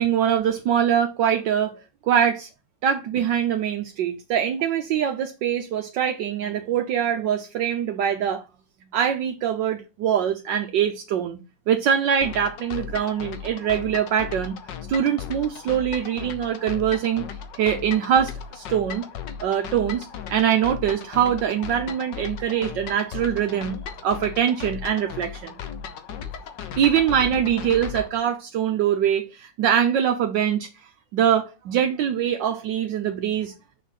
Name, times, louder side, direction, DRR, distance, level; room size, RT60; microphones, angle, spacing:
voice 1, 0.0-1.7 2.0-2.5 2.8-8.4 8.9-11.4 11.7-14.6 14.9-17.2 17.6-19.1 19.4-23.8 24.0-25.5 26.8-30.7 31.1-33.5, right 9 dB, 70° right, 1.4 m, -23 dB
sound 1, 12.2-28.1, left 7 dB, 70° left, 1.6 m, -36 dB
6.4 x 4.9 x 6.3 m
omnidirectional pair, 2.1 m